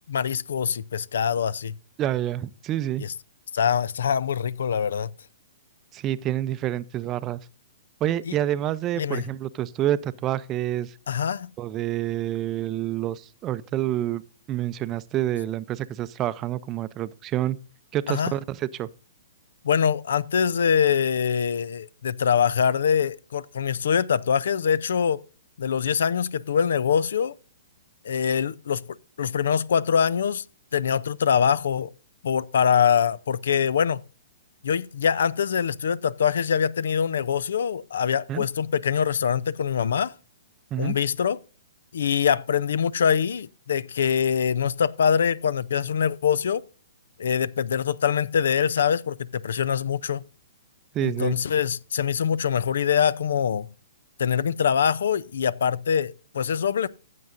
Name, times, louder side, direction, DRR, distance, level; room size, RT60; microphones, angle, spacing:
voice 1, 0.1-1.7 3.0-3.1 3.5-5.1 8.3-8.4 9.0-9.2 11.1-11.5 18.1-18.3 19.6-25.2 25.6-27.3 28.0-28.8 29.2-30.4 30.7-31.9 32.2-34.0 34.6-40.1 40.8-41.4 41.9-46.6 47.2-50.2 51.0-53.7 54.2-56.9, left 7 dB, 75° left, 0.5 m, -24 dB
voice 2, 2.0-3.0 5.9-7.4 8.0-10.9 11.6-14.2 14.5-17.6 17.9-18.9 38.3-38.4 40.7-40.9 50.9-51.3, right 12 dB, 25° right, 0.5 m, -28 dB
15.0 x 7.5 x 2.6 m
hypercardioid pair, 135°, 0 cm